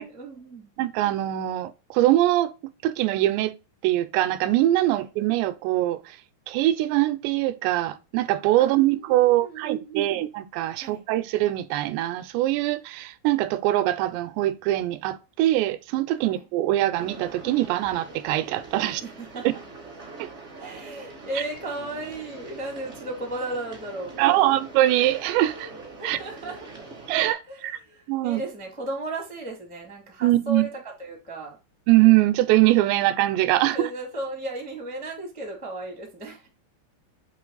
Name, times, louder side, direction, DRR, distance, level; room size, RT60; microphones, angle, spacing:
voice 1, 0.0-0.7 4.9-5.1 8.6-10.2 10.8-11.0 16.2-16.5 18.8-19.6 20.6-24.5 26.0-26.7 27.5-31.6 33.7-36.5, right 2 dB, 10° left, 0.4 m, -35 dB
voice 2, 0.8-2.5 2.8-3.5 3.8-6.2 6.5-19.0 20.2-20.3 24.2-25.7 26.0-26.2 27.1-27.8 28.1-28.4 30.2-30.7 31.9-33.9, right 15 dB, 85° right, 2.7 m, -22 dB
sound 1, 17.0-27.3, right 3 dB, 40° right, 0.9 m, -43 dB
7.6 x 3.2 x 3.8 m
omnidirectional pair, 5.1 m